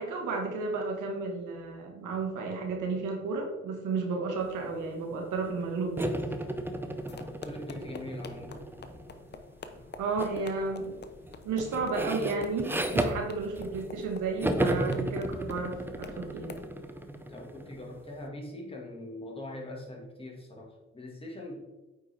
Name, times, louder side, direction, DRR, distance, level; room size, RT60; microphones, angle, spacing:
voice 1, 0.0-6.2 10.0-11.0 11.4-16.5, right 4 dB, 85° right, 1 dB, 1.5 m, -32 dB
sound 1, 6.0-9.3 10.2-10.5 10.8-14.1 14.4-18.0, right 1 dB, 5° right, 0.6 m, -34 dB
sound 2, 7.0-16.7, left 4 dB, 35° left, 0.7 m, -48 dB
voice 2, 7.1-8.6 17.3-21.6, left 1 dB, 20° left, 0 dB, 1.7 m, -42 dB
8.7 x 4.7 x 3.3 m, 1.1 s
cardioid pair, 90°, 30 cm